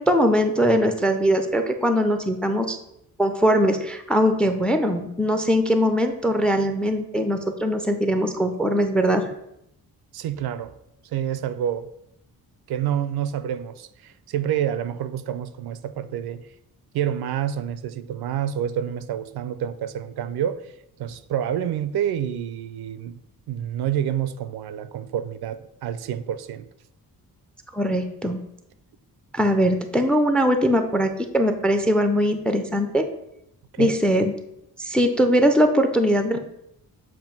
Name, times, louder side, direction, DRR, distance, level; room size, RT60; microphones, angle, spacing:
voice 1, 0.0-2.8 3.2-9.3 27.7-28.4 29.3-33.1 33.8-34.3 34.8-36.4, equal, 5° left, 7 dB, 0.3 m, -21 dB
voice 2, 10.1-10.7 11.0-11.9 12.7-16.4 16.9-20.6 21.0-23.2 23.5-26.7 27.9-28.0 33.7-34.0, right 10 dB, 80° right, 14 dB, 0.5 m, -28 dB
7.5 x 2.6 x 5.2 m, 0.81 s
wide cardioid pair, 160°, 37 cm